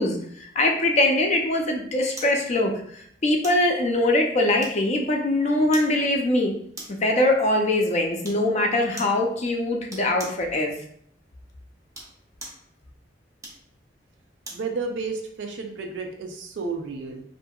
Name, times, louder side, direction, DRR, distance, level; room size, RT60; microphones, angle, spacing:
voice 1, 0.0-6.5 6.9-10.7, left 1 dB, 40° left, 2 dB, 0.4 m, -22 dB
sound 1, 2.2-2.4 3.4-3.7 4.6-5.0 5.7-6.0 6.7-7.1 8.2-8.5 9.0-9.2 9.9-10.4 11.8-12.7 13.4-14.7 15.2-15.3, right 2 dB, 20° right, 0.6 m, -41 dB
voice 2, 14.5-17.2, right 4 dB, 85° right, 3 dB, 0.5 m, -32 dB
2.7 x 2.5 x 2.3 m, 0.64 s
head